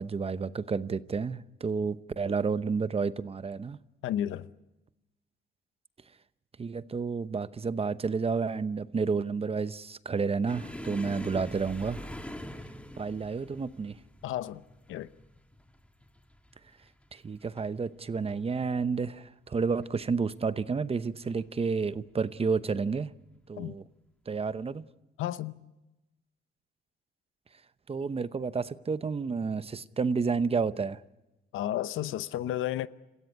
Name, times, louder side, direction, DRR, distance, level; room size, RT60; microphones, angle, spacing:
voice 1, 0.0-3.8 6.6-12.1 13.0-14.0 17.1-23.1 23.5-23.8 24.3-24.8 27.9-31.0, right 5 dB, 30° right, 0.9 m, -30 dB
voice 2, 4.0-4.5 14.2-14.6 14.9-15.1 23.6-23.7 25.2-25.6 31.5-32.9, left 12 dB, 85° left, 0.8 m, -32 dB
sound 1, 10.5-17.7 18.0-18.4 18.7-18.9 19.7-20.3 21.2-21.4 22.8-23.0, left 1 dB, 5° left, 1.7 m, -44 dB
27.5 x 15.5 x 9.8 m
cardioid pair, 90°, 20 cm